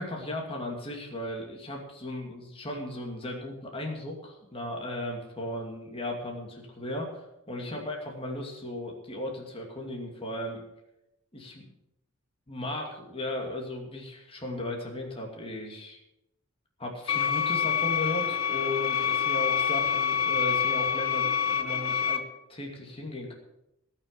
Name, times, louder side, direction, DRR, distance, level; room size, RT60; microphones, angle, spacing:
voice 1, 0.0-10.6 11.3-11.6 12.5-16.0 16.8-22.2 22.5-23.3, left 1 dB, 25° left, 0 dB, 2.6 m, -36 dB
sound 1, 17.1-22.2, left 7 dB, 80° left, 1.2 m, -27 dB
18.5 x 6.5 x 6.9 m, 0.89 s
head